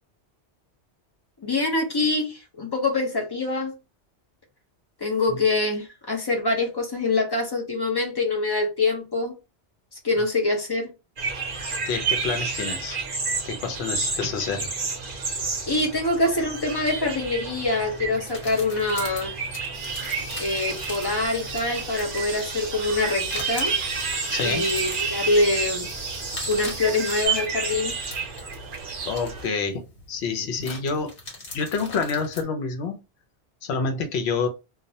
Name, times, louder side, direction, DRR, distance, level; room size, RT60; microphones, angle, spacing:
voice 1, 1.4-3.7 5.0-9.4 10.0-10.9 15.7-19.3 20.4-23.7 24.4-25.9 26.5-27.9, left 2 dB, 40° left, 0.3 m, -25 dB
sound 1, 11.2-29.5, right 4 dB, 60° right, 0.7 m, -31 dB
voice 2, 11.9-13.0 13.4-14.7 24.3-24.7 29.1-31.1 31.5-33.0 33.6-34.5, left 5 dB, 75° left, 0.8 m, -28 dB
sound 2, 18.3-32.4, left 2 dB, 55° left, 1.2 m, -42 dB
sound 3, 19.7-27.3, right 2 dB, 30° right, 0.9 m, -38 dB
2.3 x 2.0 x 2.6 m
omnidirectional pair, 1.1 m